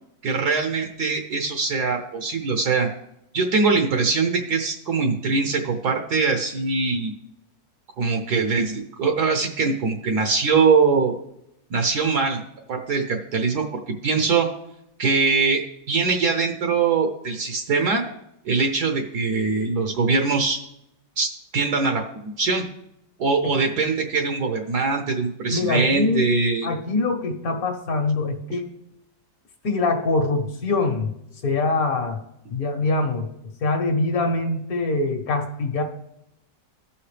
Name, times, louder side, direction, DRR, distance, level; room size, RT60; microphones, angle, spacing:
voice 1, 0.2-2.9 3.3-7.1 8.0-11.1 11.7-12.4 12.7-13.7 14.0-14.5 15.0-15.6 15.9-18.0 18.4-20.6 21.2-22.0 22.4-22.6 23.2-26.7, right 4 dB, 65° right, 3 dB, 1.3 m, -22 dB
voice 2, 25.5-26.3 26.6-28.7 29.6-31.1 31.4-32.2 32.5-33.3 33.6-35.8, left 3 dB, 55° left, 4 dB, 1.5 m, -23 dB
15.0 x 5.8 x 3.3 m, 0.81 s
omnidirectional pair, 2.0 m